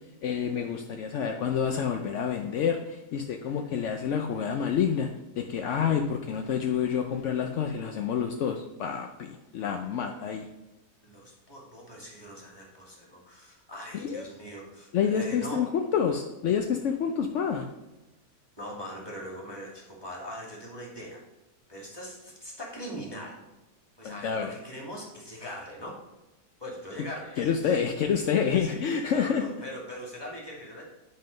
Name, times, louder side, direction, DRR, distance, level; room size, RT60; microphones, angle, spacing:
voice 1, 0.2-5.1 5.4-10.5 13.9-14.3 14.9-17.7 24.0-24.5 27.4-29.4, left 7 dB, 70° left, 4 dB, 0.7 m, -28 dB
voice 2, 11.0-15.6 18.6-21.2 21.7-23.3 24.0-25.9 26.6-27.7 28.4-28.8 29.1-30.8, equal, 15° left, -2 dB, 1.9 m, -41 dB
9.6 x 3.9 x 5.2 m, 1.0 s
omnidirectional pair, 1.8 m